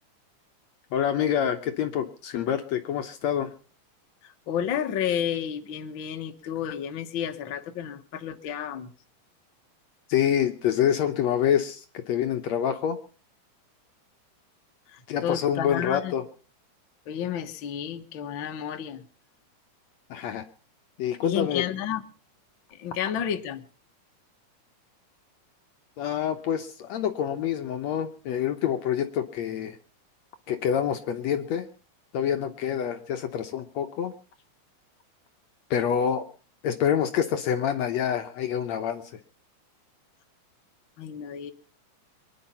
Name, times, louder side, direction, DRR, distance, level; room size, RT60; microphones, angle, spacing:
voice 1, 0.9-3.5 10.1-13.0 15.1-16.2 20.1-20.5 21.0-21.6 26.0-29.8 30.5-31.7 32.1-34.1 35.7-36.3 36.6-39.0, left 9 dB, 70° left, 7 dB, 2.0 m, -26 dB
voice 2, 4.2-8.9 14.9-16.1 17.1-19.0 21.2-22.0 22.7-23.6 41.0-41.5, left 9 dB, 50° left, 6 dB, 1.7 m, -31 dB
24.0 x 10.5 x 5.6 m, 0.40 s
omnidirectional pair, 3.6 m